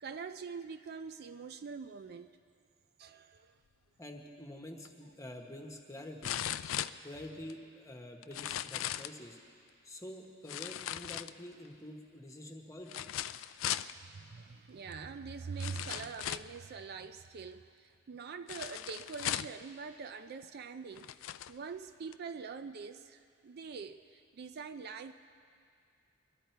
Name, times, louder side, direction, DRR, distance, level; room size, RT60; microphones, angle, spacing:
voice 1, 0.0-2.3 3.0-3.5 14.1-21.1 21.5-25.1, right 5 dB, 50° right, 9 dB, 0.4 m, -44 dB
voice 2, 4.0-6.4 7.0-9.4 9.8-13.1, left 1 dB, 15° left, 2 dB, 1.2 m, -47 dB
sound 1, 4.8-4.9 6.2-7.5 8.2-9.2 10.5-11.7 12.9-13.9 14.9-15.0 15.6-16.6 18.5-19.6 20.4-20.5 20.9-21.5 22.1-22.2, left 12 dB, 75° left, 0.4 m, -38 dB
23.0 x 12.0 x 4.5 m, 2.3 s
head